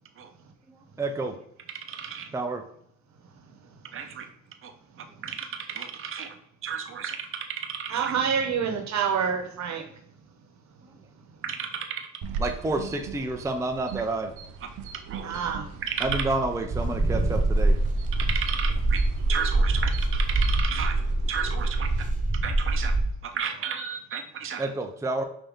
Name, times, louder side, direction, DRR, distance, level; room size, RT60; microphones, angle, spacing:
voice 1, 1.0-1.4 2.3-2.6 12.4-14.3 16.0-17.8 24.6-25.2, right 2 dB, 10° right, 4 dB, 0.5 m, -29 dB
voice 2, 1.9-2.3 3.9-4.2 4.6-4.7 5.2-6.3 6.6-8.1 11.4-12.1 15.1-15.3 15.9-16.2 18.2-19.0 19.3-21.0 21.3-21.9 22.4-22.9 23.2-24.7, right 7 dB, 45° right, 5 dB, 0.7 m, -33 dB
voice 3, 7.9-9.8 15.2-15.7, right 7 dB, 65° right, 4 dB, 1.1 m, -27 dB
sound 1, 12.2-22.0, right 4 dB, 80° right, 0.6 m, -38 dB
sound 2, 16.7-23.1, right 2 dB, 25° right, 1.1 m, -24 dB
5.4 x 2.8 x 3.5 m, 0.71 s
cardioid pair, 90°, 30 cm